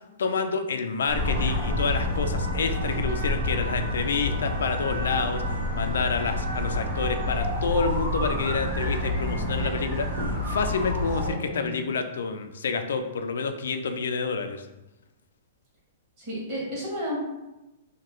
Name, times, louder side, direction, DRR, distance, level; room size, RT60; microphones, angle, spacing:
voice 1, 0.2-14.7, left 5 dB, 85° left, 7 dB, 0.3 m, -28 dB
sound 1, 1.1-11.3, left 1 dB, 55° right, 1.3 m, -28 dB
voice 2, 11.2-11.8 16.2-17.2, equal, 35° right, -6 dB, 1.2 m, -32 dB
2.8 x 2.2 x 3.0 m, 0.99 s
hypercardioid pair, 160°, 0 cm